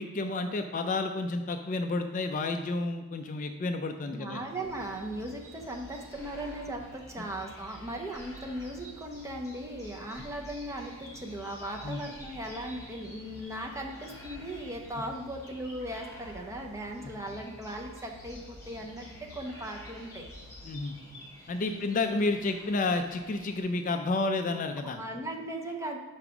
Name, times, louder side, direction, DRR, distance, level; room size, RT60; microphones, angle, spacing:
voice 1, 0.0-4.4 7.2-7.3 11.8-12.0 17.0-17.1 20.6-21.0 21.5-25.0, left 3 dB, 35° left, 6 dB, 0.3 m, -31 dB
voice 2, 4.1-19.1 19.3-20.3 21.7-21.9 24.9-26.0, right 1 dB, 15° right, 1 dB, 0.6 m, -38 dB
sound 1, 4.5-23.6, equal, 15° left, 1.4 m, -51 dB
sound 2, 4.6-20.6, left 1 dB, 55° right, 0.6 m, -51 dB
5.3 x 4.8 x 5.9 m, 1.2 s
head